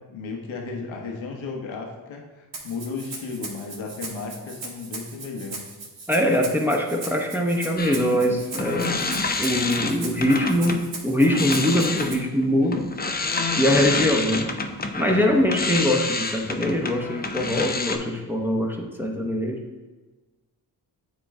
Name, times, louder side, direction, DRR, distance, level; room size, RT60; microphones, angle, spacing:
voice 1, 0.1-5.7 15.1-15.4, left 4 dB, 75° left, 0 dB, 1.1 m, -34 dB
Rattle (instrument), 2.5-12.1, right 3 dB, 70° right, 1.4 m, -38 dB
voice 2, 6.1-9.0 9.4-12.9 13.6-14.5 14.9-19.7, left 1 dB, 5° right, 0 dB, 0.9 m, -22 dB
sound 1, 7.8-10.8 11.2-18.0, left 3 dB, 20° left, 0.6 m, -28 dB
8.9 x 3.0 x 3.7 m, 1.2 s
supercardioid pair, 45°, 47 cm